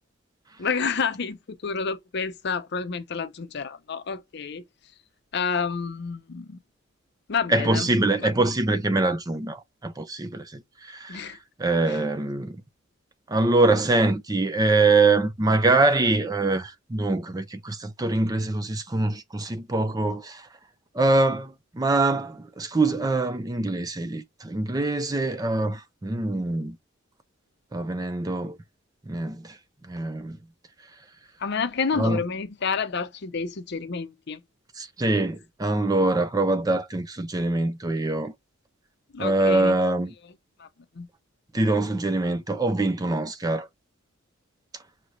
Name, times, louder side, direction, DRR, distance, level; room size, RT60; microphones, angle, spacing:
voice 1, 0.6-4.6 5.3-6.6 7.3-7.9 8.2-8.3 11.1-11.4 11.9-12.0 31.4-34.4 39.1-39.8 40.6-40.7 41.0-41.1, left 5 dB, 55° left, 0.6 m, -29 dB
voice 2, 7.5-11.3 11.6-12.6 13.3-20.5 20.9-26.8 27.7-28.6 29.1-29.6 29.9-30.4 32.0-32.2 34.8-38.3 39.2-40.1 41.5-43.7, right 2 dB, 20° right, 0.5 m, -24 dB
5.7 x 3.2 x 2.6 m
head